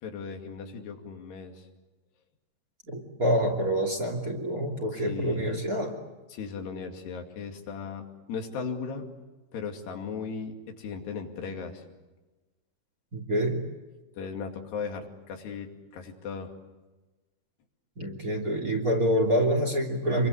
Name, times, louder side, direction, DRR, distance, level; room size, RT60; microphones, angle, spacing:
voice 1, 0.0-1.6 4.9-5.4 6.3-9.1 9.5-11.8 14.1-16.5, left 5 dB, 90° left, 3 dB, 4.6 m, -37 dB
voice 2, 2.9-6.0 13.1-13.6 18.0-20.3, equal, 25° right, 3 dB, 2.9 m, -26 dB
27.5 x 23.5 x 8.3 m, 1.2 s
omnidirectional pair, 4.6 m